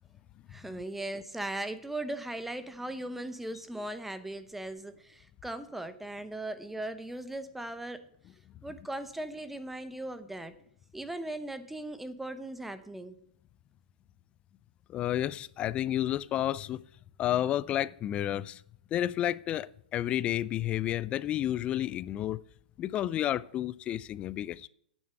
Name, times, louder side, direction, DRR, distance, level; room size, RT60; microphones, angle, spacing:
voice 1, 0.5-8.1 8.6-10.5 10.9-13.2, right 1 dB, 5° right, 0.8 m, -38 dB
voice 2, 14.9-16.8 17.2-18.6 18.9-22.4 22.8-24.7, left 12 dB, 25° left, 0.3 m, -31 dB
8.9 x 7.2 x 7.9 m
hypercardioid pair, 135°, 5 cm